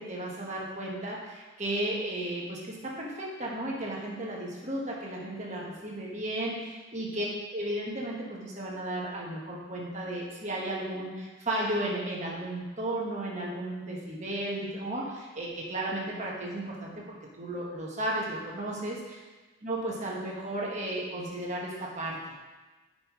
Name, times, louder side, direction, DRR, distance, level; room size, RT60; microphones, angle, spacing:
voice 1, 0.0-7.2 7.5-19.2 19.6-22.3, right 1 dB, 30° right, -3 dB, 1.5 m, -34 dB
13.5 x 5.6 x 3.2 m, 1.2 s
head